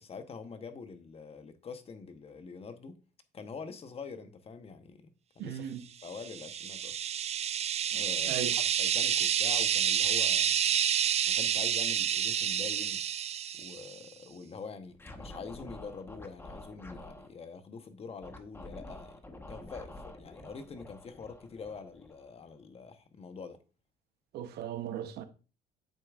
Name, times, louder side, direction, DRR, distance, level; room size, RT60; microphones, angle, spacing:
voice 1, 0.0-3.0 3.3-5.7 6.0-7.0 7.9-10.6 11.3-13.0 13.6-19.2 19.5-23.6, left 5 dB, 35° left, 1.0 m, -45 dB
voice 2, 5.4-5.8 7.9-8.6 24.3-25.2, right 9 dB, 70° right, 0.9 m, -38 dB
sound 1, 6.2-14.0, right 9 dB, 40° right, 0.4 m, -29 dB
Scratching (performance technique), 14.9-17.3 18.2-22.5, left 1 dB, 15° left, 1.1 m, -48 dB
8.4 x 6.6 x 2.4 m
cardioid pair, 110°, 17 cm